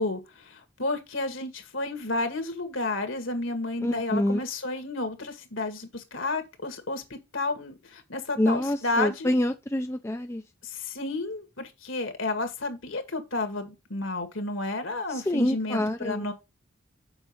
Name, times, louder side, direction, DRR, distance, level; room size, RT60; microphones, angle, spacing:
voice 1, 0.0-9.3 10.6-16.3, left 2 dB, 65° left, 1.9 m, -31 dB
voice 2, 3.8-4.4 8.4-10.4 15.3-16.3, left 1 dB, 10° left, 0.5 m, -26 dB
7.1 x 5.4 x 5.4 m
head